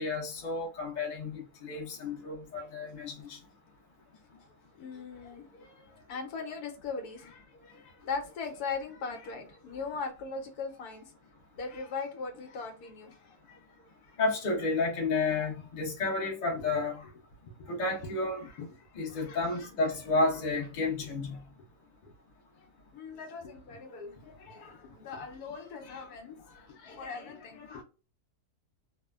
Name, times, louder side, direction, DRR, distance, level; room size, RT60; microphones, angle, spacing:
voice 1, 0.0-3.4 14.2-17.0 17.7-18.5 18.9-21.4, left 3 dB, 35° left, 0.8 m, -31 dB
voice 2, 4.8-11.1 11.5-13.6 15.3-15.4 16.6-16.8 17.6-17.7 18.6-18.7 19.1-19.5 22.0-22.1 22.9-27.8, left 4 dB, 75° left, 1.2 m, -40 dB
3.2 x 2.1 x 2.2 m
omnidirectional pair, 1.7 m